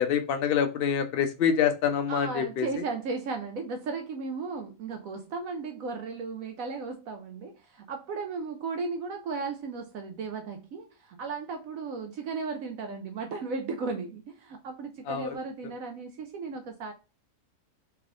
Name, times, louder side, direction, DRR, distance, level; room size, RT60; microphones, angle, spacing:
voice 1, 0.0-2.8 15.1-15.4, left 8 dB, 75° left, 0.5 m, -26 dB
voice 2, 2.1-16.9, right 4 dB, 70° right, 0.9 m, -35 dB
3.4 x 3.4 x 2.4 m
omnidirectional pair, 1.6 m